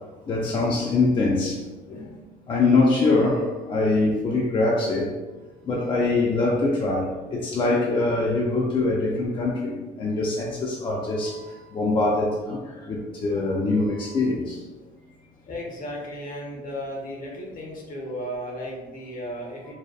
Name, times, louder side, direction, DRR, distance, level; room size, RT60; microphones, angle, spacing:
voice 1, 0.3-1.6 1.9-2.1 2.5-5.2 5.7-14.6, left 3 dB, 30° left, -3 dB, 0.4 m, -23 dB
voice 2, 14.8-15.2 15.4-19.7, equal, 55° left, -2 dB, 0.8 m, -35 dB
2.7 x 2.1 x 2.3 m, 1.2 s
cardioid pair, 110°, 17 cm